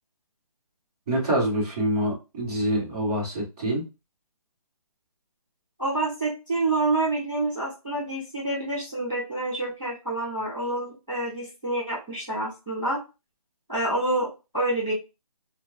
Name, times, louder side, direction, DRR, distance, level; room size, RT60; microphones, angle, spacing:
voice 1, 1.1-3.8, right 1 dB, 10° right, -9 dB, 1.0 m, -26 dB
voice 2, 5.8-13.0 13.7-14.9, right 2 dB, 5° left, -19 dB, 0.5 m, -28 dB
4.3 x 2.2 x 2.5 m, 0.28 s
hypercardioid pair, 175°, 19 cm